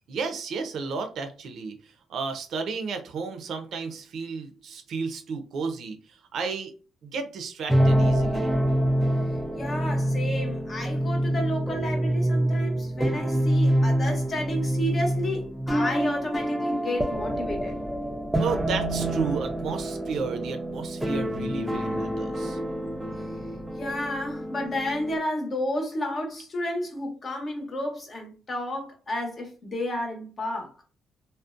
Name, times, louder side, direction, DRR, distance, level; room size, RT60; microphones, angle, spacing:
voice 1, 0.1-6.7 7.0-8.5 18.4-22.6, right 5 dB, 70° right, 0.5 m, -33 dB
sound 1, 7.7-25.2, right 1 dB, 5° right, 0.4 m, -26 dB
voice 2, 9.6-17.7 23.8-30.7, left 1 dB, 40° left, 0.8 m, -31 dB
2.5 x 2.0 x 2.4 m
cardioid pair, 90°, 0 cm